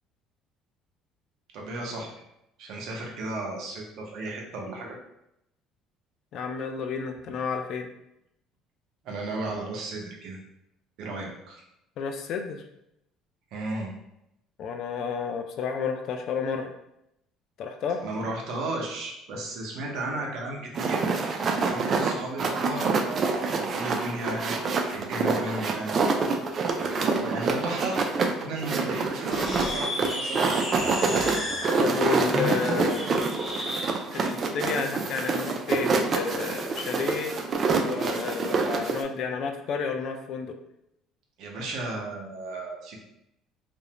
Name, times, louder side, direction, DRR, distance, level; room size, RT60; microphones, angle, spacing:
voice 1, 1.5-2.1 2.6-5.0 9.0-10.4 11.0-11.6 13.5-13.9 18.0-21.1 21.6-24.5 24.8-25.9 26.7-28.1 28.4-30.5 41.4-43.0, right 2 dB, 70° right, -1 dB, 0.7 m, -34 dB
voice 2, 6.3-7.9 12.0-12.6 14.6-16.7 17.6-18.0 31.8-33.1 34.1-37.3 37.8-40.6, left 6 dB, 55° left, 5 dB, 0.3 m, -31 dB
sound 1, 20.7-39.0, right 4 dB, 40° right, 0.3 m, -27 dB
sound 2, 29.2-34.0, left 1 dB, 25° left, 0.8 m, -33 dB
2.5 x 2.0 x 2.8 m, 0.82 s
cardioid pair, 110°, 0 cm